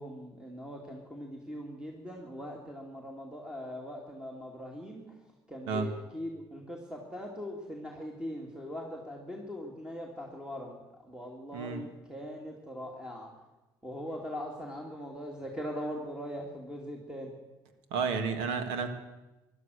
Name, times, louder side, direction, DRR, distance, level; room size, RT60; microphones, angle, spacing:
voice 1, 0.0-5.2 5.5-13.3 13.8-17.3, equal, 10° right, 0 dB, 2.5 m, -41 dB
voice 2, 17.9-18.9, right 5 dB, 90° right, 9 dB, 1.7 m, -31 dB
16.5 x 12.0 x 6.4 m, 1.1 s
supercardioid pair, 90°, 9 cm